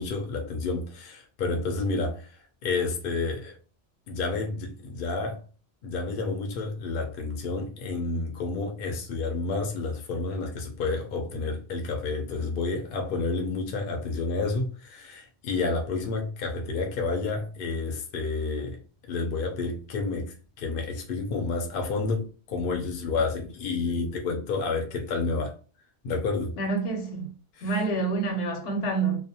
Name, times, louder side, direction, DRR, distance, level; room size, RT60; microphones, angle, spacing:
voice 1, 0.0-3.6 4.1-5.4 5.8-18.8 19.0-25.5 26.0-26.5 27.6-27.8, left 3 dB, 60° left, 0.6 m, -30 dB
voice 2, 26.6-27.3 27.6-29.2, right 3 dB, 75° left, 1.0 m, -27 dB
2.4 x 2.0 x 2.7 m
omnidirectional pair, 1.3 m